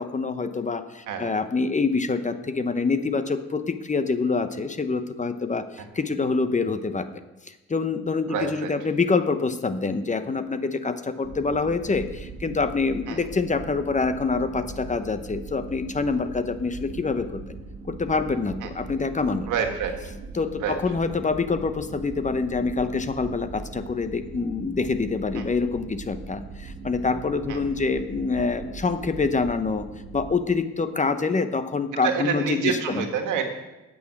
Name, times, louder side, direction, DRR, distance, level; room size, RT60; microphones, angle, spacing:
voice 1, 0.0-7.1 7.5-17.6 17.9-19.5 20.3-29.9 30.1-33.0, left 4 dB, 25° left, 10 dB, 0.8 m, -26 dB
voice 2, 8.3-8.7 13.1-13.2 18.6-18.7 19.5-20.0 20.6-20.7 25.3-25.4 27.5-27.6 32.0-33.4, right 7 dB, 85° right, 5 dB, 1.7 m, -27 dB
sound 1, 11.2-30.4, right 4 dB, 50° right, 1.7 m, -40 dB
9.2 x 6.4 x 7.8 m, 1.0 s
cardioid pair, 90°, 30 cm